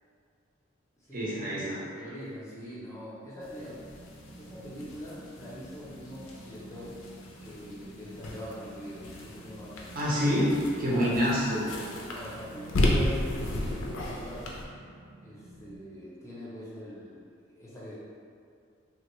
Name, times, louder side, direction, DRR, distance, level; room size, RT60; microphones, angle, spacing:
voice 1, 1.1-1.8 10.0-10.5 10.8-11.6, equal, 45° right, -7 dB, 0.6 m, -26 dB
voice 2, 1.9-3.8 4.4-7.0 7.4-9.9 10.9-14.5 15.2-17.9, equal, 15° left, -8 dB, 0.6 m, -43 dB
sound 1, 3.4-14.6, left 1 dB, 80° left, 0.4 m, -34 dB
sound 2, 3.6-15.8, right 1 dB, 70° right, 0.9 m, -50 dB
3.1 x 2.2 x 3.0 m, 2.3 s
head